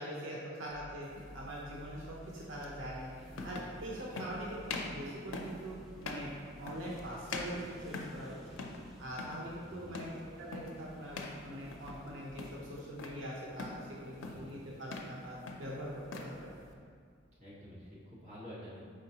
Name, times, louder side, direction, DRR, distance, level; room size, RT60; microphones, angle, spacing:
voice 1, 0.0-3.1 3.4-4.5 4.8-5.8 6.0-6.3 6.6-8.6 9.0-10.1 10.4-16.6, equal, 80° right, -4 dB, 0.7 m, -43 dB
sound 1, 0.7-16.8, equal, ahead, 0.5 m, -55 dB
sound 2, 1.1-1.3 2.6-2.7 3.3-3.8 4.1-4.4 4.7-5.0 5.3-5.6 6.0-6.3 6.7-7.0 7.3-8.3 8.6-8.9 9.1-9.4 9.9-10.2 10.5-10.8 11.1-11.4 11.7-12.1 12.4-13.2 13.6-13.9 14.2-14.5 14.8-15.2 15.5-16.3, left 3 dB, 85° left, 0.5 m, -42 dB
voice 2, 9.6-10.0 14.2-14.6 17.4-18.8, equal, 35° right, -9 dB, 1.4 m, -50 dB
5.0 x 3.8 x 2.8 m, 2.2 s
head